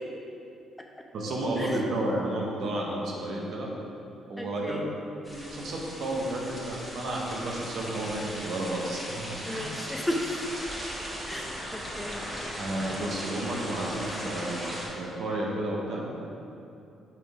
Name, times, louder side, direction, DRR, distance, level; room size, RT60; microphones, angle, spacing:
voice 1, 1.1-3.7 4.3-4.8 5.3-9.7 12.6-16.1, right 1 dB, 65° right, -2 dB, 1.1 m, -32 dB
voice 2, 4.4-4.9 9.5-10.5 11.2-12.2, left 1 dB, 10° left, 1 dB, 0.6 m, -34 dB
sound 1, 5.2-14.9, equal, 5° right, 1.4 m, -38 dB
5.9 x 3.7 x 4.8 m, 2.7 s
cardioid pair, 90°, 0 cm